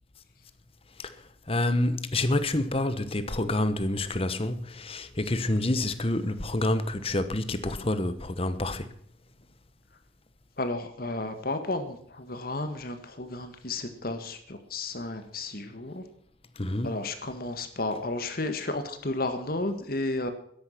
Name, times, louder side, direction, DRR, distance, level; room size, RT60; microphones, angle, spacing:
voice 1, 1.5-8.9 16.6-16.9, left 1 dB, 30° left, 1.1 m, -28 dB
voice 2, 10.6-16.0 16.8-20.3, left 2 dB, 50° left, 1.6 m, -32 dB
13.5 x 10.5 x 5.9 m
head